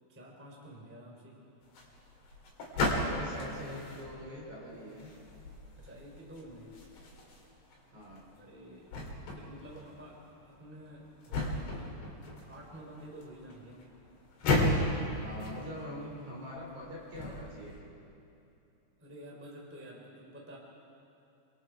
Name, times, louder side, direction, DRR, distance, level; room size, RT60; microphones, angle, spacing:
voice 1, 0.1-1.4 5.8-6.8 8.3-8.9 9.3-12.0 12.5-14.0 19.0-20.6, right 1 dB, 5° right, -2 dB, 2.8 m, -50 dB
sound 1, 1.6-17.8, left 1 dB, 65° left, 5.3 m, -36 dB
voice 2, 2.7-5.1 7.9-8.2 15.2-17.8, left 1 dB, 45° right, -4 dB, 5.5 m, -43 dB
27.0 x 26.0 x 4.7 m, 2.7 s
omnidirectional pair, 5.1 m